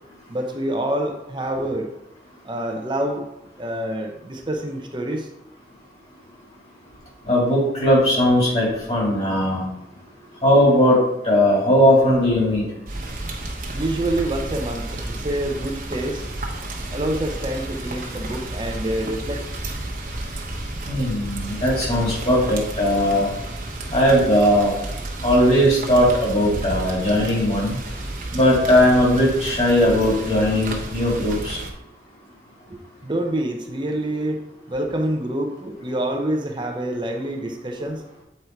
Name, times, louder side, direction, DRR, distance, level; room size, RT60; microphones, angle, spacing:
voice 1, 0.3-1.9 2.4-3.3 3.6-5.3 10.2-10.5 13.7-16.2 16.9-19.4 32.7-34.4 34.7-38.0, right 1 dB, 25° right, 3 dB, 0.7 m, -27 dB
voice 2, 7.3-9.6 10.4-11.0 11.2-12.6 20.9-23.3 23.9-24.7 25.2-27.8 28.3-31.6, equal, 35° left, -5 dB, 2.8 m, -18 dB
Rain, 12.9-31.7, right 1 dB, 50° right, 1.1 m, -32 dB
8.0 x 4.2 x 4.6 m, 0.89 s
head